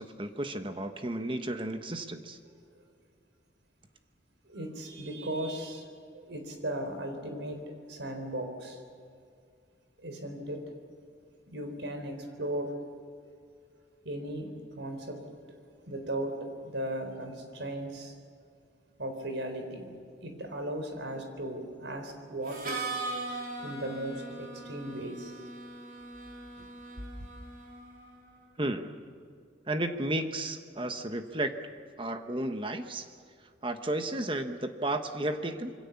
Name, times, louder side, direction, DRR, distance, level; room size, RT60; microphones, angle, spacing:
voice 1, 0.0-2.4 28.6-29.0 29.7-31.6 32.0-33.1 33.6-35.7, right 1 dB, 25° right, 7 dB, 1.2 m, -33 dB
voice 2, 4.5-5.9 6.1-8.8 10.0-10.6 11.5-12.8 14.0-15.6 15.9-18.2 19.0-19.9 20.2-22.9 23.6-25.4 26.6-26.7, right 1 dB, 75° right, 6 dB, 4.1 m, -37 dB
Harmonica, 22.5-28.2, right 3 dB, 50° right, 4.1 m, -40 dB
26.5 x 23.5 x 7.2 m, 2.3 s
head